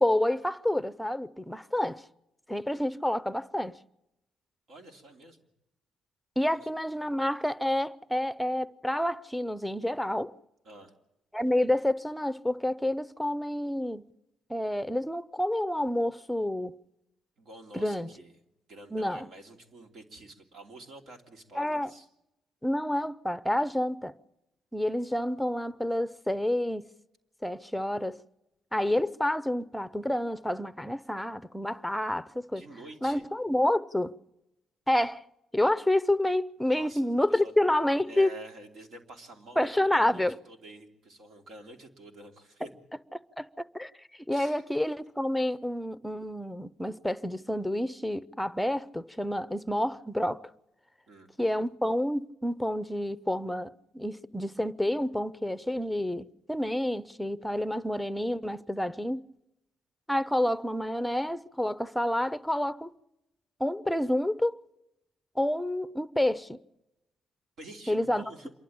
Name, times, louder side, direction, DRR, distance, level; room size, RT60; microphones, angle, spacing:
voice 1, 0.0-2.0 2.5-3.8 6.4-10.3 11.3-14.1 14.5-16.8 17.7-18.1 18.9-19.3 21.6-21.9 22.6-24.1 24.7-26.9 27.4-28.2 28.7-32.6 33.0-34.1 34.9-35.2 35.5-38.3 39.6-40.3 43.1-43.5 43.7-43.9 44.3-50.4 51.4-59.2 60.1-62.9 63.6-64.6 65.4-66.6 67.9-68.2, left 1 dB, 5° left, 0.7 m, -29 dB
voice 2, 4.7-5.4 6.4-7.1 10.6-10.9 17.4-18.4 18.7-22.1 32.5-33.2 36.6-37.6 38.1-42.7 44.3-44.6 51.1-51.3 67.6-68.5, right 1 dB, 70° right, 3.1 m, -49 dB
27.0 x 11.5 x 8.7 m
cardioid pair, 90°, 0 cm